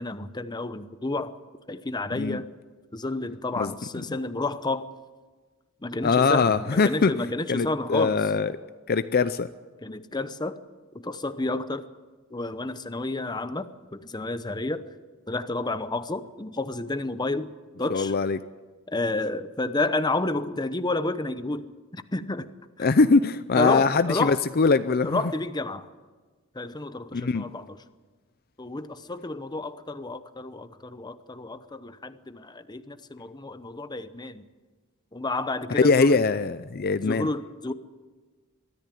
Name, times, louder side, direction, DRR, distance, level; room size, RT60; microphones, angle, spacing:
voice 1, 0.0-1.3 1.7-2.5 2.9-4.9 5.8-8.2 9.8-10.6 10.9-11.8 12.3-14.8 15.3-17.5 17.8-18.1 18.9-22.5 22.8-22.9 23.6-24.4 25.0-25.9 26.5-27.8 28.6-34.5 35.1-36.3 37.1-37.7, left 2 dB, 20° left, 12 dB, 0.8 m, -30 dB
voice 2, 2.1-2.4 3.6-3.7 6.0-7.1 7.5-8.5 8.9-9.5 17.9-18.4 22.8-25.2 27.1-27.5 35.7-37.3, left 4 dB, 45° left, 12 dB, 0.5 m, -22 dB
23.0 x 14.0 x 9.2 m, 1.4 s
head